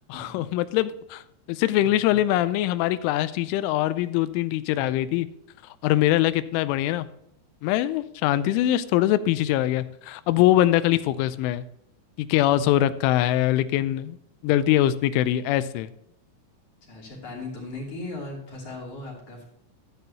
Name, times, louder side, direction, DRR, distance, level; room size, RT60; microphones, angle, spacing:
voice 1, 0.1-1.2 1.5-5.3 5.8-7.1 7.6-11.6 12.2-14.2 14.4-15.9, left 13 dB, 85° left, 14 dB, 3.0 m, -23 dB
voice 2, 1.8-2.2 10.2-10.4 16.8-19.4, left 2 dB, 40° left, -4 dB, 3.8 m, -38 dB
13.5 x 9.2 x 2.8 m, 0.75 s
omnidirectional pair, 5.7 m